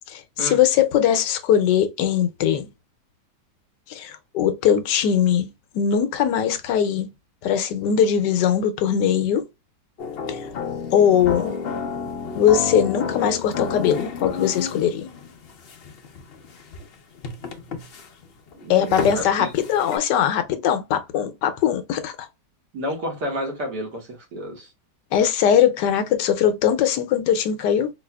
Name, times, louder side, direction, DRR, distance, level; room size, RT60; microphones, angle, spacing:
voice 1, 0.1-2.7 3.9-5.5 5.7-7.1 7.4-9.4 10.3-10.4 10.9-11.5 12.3-15.1 18.7-22.1 25.1-27.9, left 9 dB, 80° left, 1.2 m, -20 dB
sound 1, 10.0-20.0, left 5 dB, 60° left, 0.6 m, -31 dB
voice 2, 18.6-19.5 22.7-24.7, equal, 70° right, 2.0 m, -30 dB
4.5 x 2.4 x 2.2 m
omnidirectional pair, 1.8 m